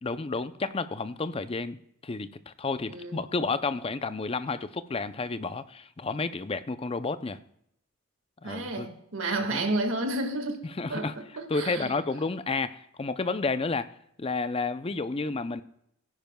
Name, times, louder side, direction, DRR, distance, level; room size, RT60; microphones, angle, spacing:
voice 1, 0.0-1.8 2.0-7.4 8.4-8.9 9.5-9.6 10.8-11.1 11.5-13.9 14.2-15.6, left 3 dB, 25° left, 0.5 m, -31 dB
voice 2, 2.9-3.2 8.4-10.6 10.9-11.9, right 2 dB, 70° right, 1.7 m, -31 dB
17.0 x 10.5 x 2.3 m
head